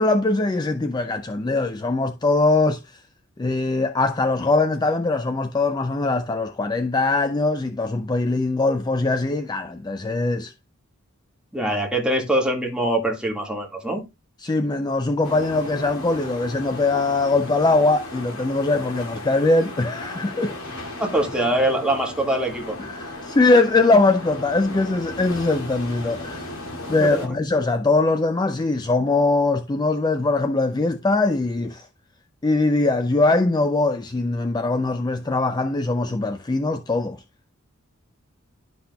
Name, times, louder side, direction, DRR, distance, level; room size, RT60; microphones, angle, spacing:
voice 1, 0.0-3.0 3.4-10.5 14.4-20.6 22.8-26.5 26.9-31.9 32.4-37.2, left 3 dB, 20° left, 0.4 m, -21 dB
voice 2, 11.5-14.0 21.0-22.8 27.0-27.4, right 1 dB, 5° right, 1.8 m, -23 dB
sound 1, 15.2-27.3, left 1 dB, 90° left, 2.1 m, -36 dB
11.5 x 5.7 x 2.2 m
head